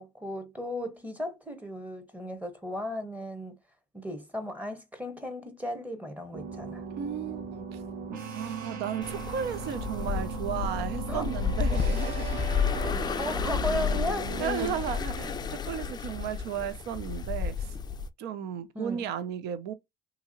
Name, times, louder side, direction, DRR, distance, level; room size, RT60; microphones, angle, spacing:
voice 1, 0.0-3.6 3.9-6.8 11.1-11.2 13.2-14.8 18.7-19.1, left 1 dB, 10° right, 0.8 m, -35 dB
sound 1, 6.3-14.4, right 6 dB, 55° right, 1.0 m, -38 dB
voice 2, 7.0-7.8 8.3-12.9 14.4-17.7 18.2-19.7, right 8 dB, 80° right, 0.6 m, -34 dB
sound 2, 9.0-18.1, left 5 dB, 25° left, 0.3 m, -31 dB
2.9 x 2.7 x 2.4 m
cardioid pair, 110°, 17 cm